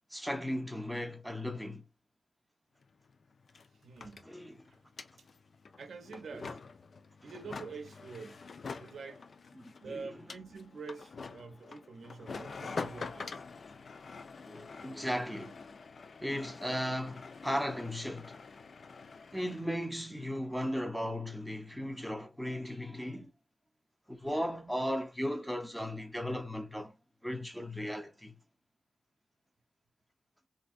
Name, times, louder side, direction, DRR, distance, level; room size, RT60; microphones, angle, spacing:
voice 1, 0.1-1.8 4.3-4.6 9.6-10.1 14.5-15.6 16.2-18.4 19.3-23.3 24.1-26.9 27.2-28.4, equal, ahead, 0.6 m, -36 dB
sound 1, 2.8-2.9 3.1-19.7, left 4 dB, 70° left, 0.4 m, -46 dB
voice 2, 3.8-4.3 4.7-4.8 5.8-6.6 7.2-8.4 8.8-9.2 9.8-13.4, right 4 dB, 85° right, 0.4 m, -46 dB
3.3 x 2.5 x 2.4 m
cardioid pair, 55°, 0 cm